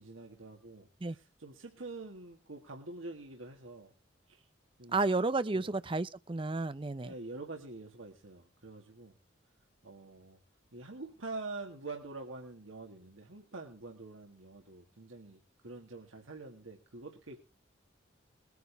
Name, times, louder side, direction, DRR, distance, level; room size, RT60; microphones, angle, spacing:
voice 1, 0.0-3.9 4.3-4.5 4.8-5.1 5.5-5.7 7.0-9.1 9.8-10.4 10.7-17.4, right 3 dB, 85° right, 1.9 m, -46 dB
voice 2, 4.9-7.1, right 3 dB, 25° right, 0.5 m, -32 dB
21.0 x 9.3 x 3.4 m
head